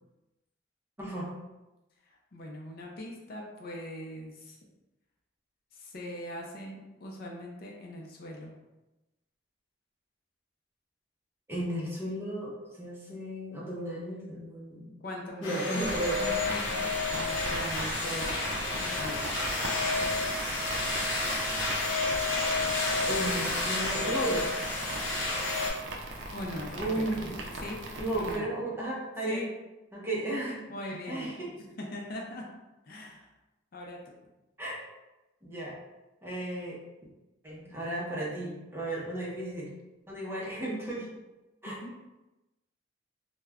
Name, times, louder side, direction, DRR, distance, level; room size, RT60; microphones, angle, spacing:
voice 1, 1.0-1.3 11.5-14.9 15.4-16.2 23.1-24.5 26.8-27.4 28.0-29.4 29.9-30.7 31.1-31.5 34.6-34.8 35.4-35.7 36.2-36.8 37.4-39.7 40.1-41.1 41.6-41.8, right 1 dB, 15° right, -5 dB, 0.6 m, -34 dB
voice 2, 2.3-4.6 5.7-8.5 15.0-15.7 16.2-18.4 18.8-19.3 26.3-27.8 28.1-28.4 29.3-29.5 30.7-32.4 32.9-33.2 33.7-34.1 41.7-41.9, left 1 dB, 50° left, -1 dB, 0.5 m, -40 dB
sound 1, 15.4-25.7, left 2 dB, 85° left, 0.7 m, -30 dB
sound 2, 15.8-28.4, right 1 dB, 65° right, 0.4 m, -39 dB
2.3 x 2.1 x 3.4 m, 1.0 s
head